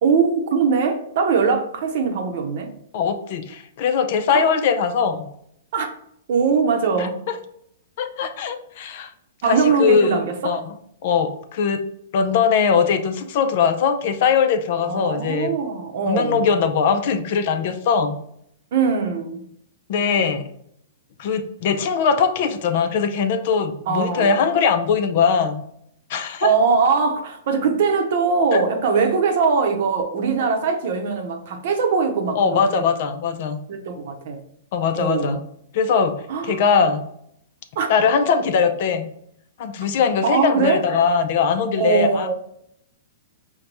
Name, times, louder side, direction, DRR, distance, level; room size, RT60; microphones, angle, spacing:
voice 1, 0.0-2.7 4.3-4.4 5.7-5.9 6.3-7.2 9.4-10.6 14.8-16.5 18.7-19.5 23.9-24.4 26.4-32.9 33.7-34.4 35.0-35.4 36.3-36.6 37.8-37.9 40.2-40.9 41.8-42.3, right 5 dB, 55° right, 0.7 m, -21 dB
voice 2, 2.9-5.3 7.0-7.1 8.0-9.1 9.4-10.7 11.0-11.8 12.1-15.5 16.1-18.2 19.9-20.5 21.2-25.6 26.1-26.5 28.5-28.6 32.4-33.6 34.7-35.4 35.7-37.0 37.9-39.1 39.6-42.3, left 6 dB, 50° left, 0.4 m, -21 dB
5.2 x 2.2 x 2.9 m
hypercardioid pair, 155°, 0 cm